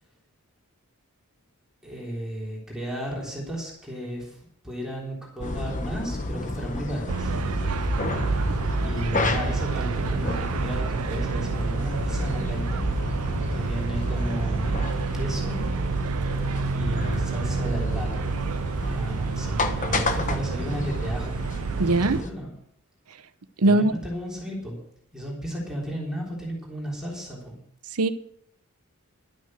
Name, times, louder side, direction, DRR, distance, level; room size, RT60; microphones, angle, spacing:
voice 1, 1.8-7.4 8.8-12.9 13.5-14.7 15.1-15.7 16.7-18.3 18.9-21.4 22.0-22.5 23.6-24.8 25.1-27.6, equal, 5° right, -4 dB, 3.6 m, -34 dB
sound 1, 5.4-22.3, left 2 dB, 35° left, 1.1 m, -31 dB
sound 2, 7.1-22.2, right 5 dB, 70° right, 0.5 m, -29 dB
voice 2, 21.8-22.2 23.6-23.9 28.0-28.1, right 2 dB, 85° right, 10 dB, 0.9 m, -19 dB
12.0 x 9.5 x 6.4 m, 0.68 s
head